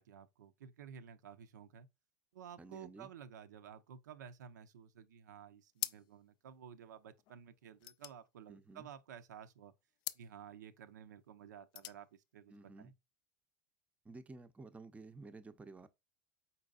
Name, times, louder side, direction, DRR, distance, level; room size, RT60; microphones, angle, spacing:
voice 1, 0.0-1.9 2.3-9.7 10.1-12.9, right 8 dB, 80° right, 0.5 m, -53 dB
voice 2, 2.6-3.1 8.5-8.9 12.5-12.9 14.0-15.9, right 3 dB, 15° right, 0.5 m, -53 dB
sound 1, 5.7-6.3 6.6-6.7 7.0-9.1 10.0-10.3 11.5-12.0, left 14 dB, 50° left, 0.3 m, -45 dB
4.5 x 4.1 x 2.3 m
hypercardioid pair, 80°, 9 cm